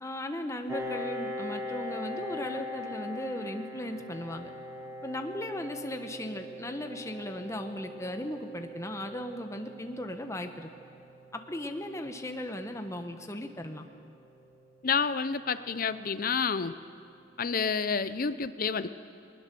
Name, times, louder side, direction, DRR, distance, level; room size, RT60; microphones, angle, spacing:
voice 1, 0.0-4.5 5.0-10.7 11.3-13.9, left 1 dB, 15° left, 5 dB, 1.1 m, -37 dB
Piano, 0.7-16.0, left 1 dB, 15° right, 1.9 m, -42 dB
voice 2, 14.8-16.7 17.4-18.9, left 5 dB, 50° left, 13 dB, 0.6 m, -29 dB
20.5 x 20.0 x 6.9 m, 2.4 s
head